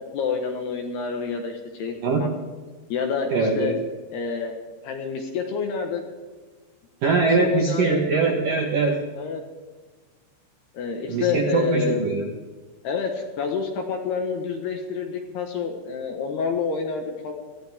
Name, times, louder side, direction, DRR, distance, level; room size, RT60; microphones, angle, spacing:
voice 1, 0.1-2.3 2.9-3.8 4.1-4.6 4.8-6.0 7.2-8.0 9.2-9.4 10.7-12.0 12.8-17.3, left 6 dB, 70° left, 3 dB, 2.7 m, -28 dB
voice 2, 3.3-3.8 7.0-9.0 11.1-12.3, right 4 dB, 65° right, 1 dB, 2.1 m, -22 dB
22.0 x 15.0 x 3.6 m, 1.4 s
omnidirectional pair, 5.9 m